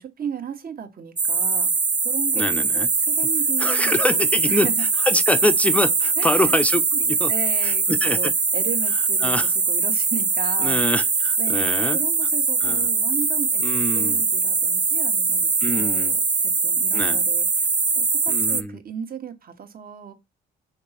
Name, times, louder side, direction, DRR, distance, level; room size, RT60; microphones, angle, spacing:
voice 1, 0.0-1.7 2.0-4.2 4.4-4.9 6.2-6.5 7.3-11.0 11.4-17.7 18.0-20.1, right 7 dB, 50° right, 1.4 m, -35 dB
sound 1, 1.2-18.6, right 4 dB, 20° right, 0.5 m, -22 dB
voice 2, 2.3-2.9 3.6-4.7 5.1-7.3 7.6-8.3 9.2-9.5 10.6-12.0 12.6-12.9 13.6-14.2 15.6-16.2 16.9-17.2 18.3-18.8, left 1 dB, 5° left, 0.7 m, -25 dB
5.1 x 3.9 x 5.8 m
cardioid pair, 90°, 20 cm